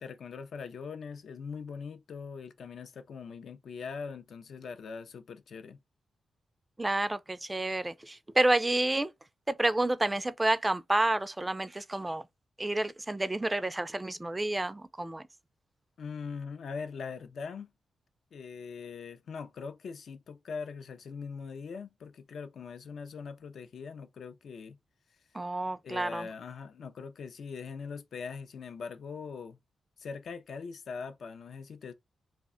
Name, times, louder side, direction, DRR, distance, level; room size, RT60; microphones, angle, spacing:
voice 1, 0.0-5.8 16.0-17.7 18.3-24.8 25.8-29.6 30.0-31.9, left 5 dB, 70° left, 0.4 m, -41 dB
voice 2, 6.8-9.1 9.5-12.2 12.6-15.2 25.3-26.3, right 2 dB, 15° right, 0.3 m, -29 dB
2.4 x 2.1 x 3.6 m
cardioid pair, 80°, 0 cm